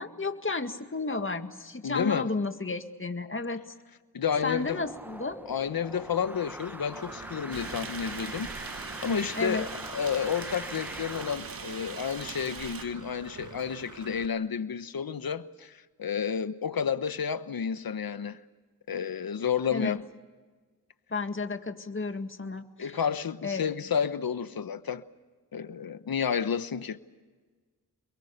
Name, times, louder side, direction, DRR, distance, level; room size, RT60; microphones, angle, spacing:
voice 1, 0.0-3.6 4.4-5.4 9.4-9.7 19.7-20.0 21.1-23.0 23.4-23.7, left 3 dB, 35° left, 1.9 m, -32 dB
voice 2, 1.8-2.3 4.1-4.8 5.5-18.4 18.9-20.0 22.8-25.0 25.5-27.0, left 7 dB, 70° left, 1.1 m, -31 dB
sound 1, 4.3-11.4, right 1 dB, 5° right, 0.8 m, -43 dB
Engine / Mechanisms, 6.9-14.3, right 5 dB, 55° right, 1.6 m, -47 dB
sound 2, 7.5-12.9, right 5 dB, 70° right, 2.0 m, -41 dB
29.0 x 22.5 x 6.7 m
cardioid pair, 65°, 36 cm